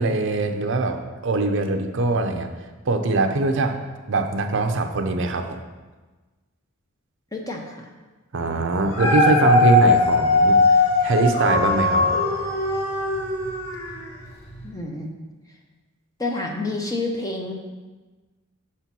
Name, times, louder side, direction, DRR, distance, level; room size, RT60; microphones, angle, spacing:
voice 1, 0.0-2.5 2.9-3.8 4.1-5.6 8.3-10.6 11.0-12.2, right 2 dB, 55° right, 6 dB, 0.6 m, -22 dB
voice 2, 7.3-7.9 14.6-15.1 16.2-17.5, left 2 dB, 15° left, 1 dB, 0.7 m, -29 dB
Dog, 8.7-14.1 14.6-14.7, left 2 dB, 75° left, 2.0 m, -19 dB
6.0 x 4.4 x 5.9 m, 1.3 s
head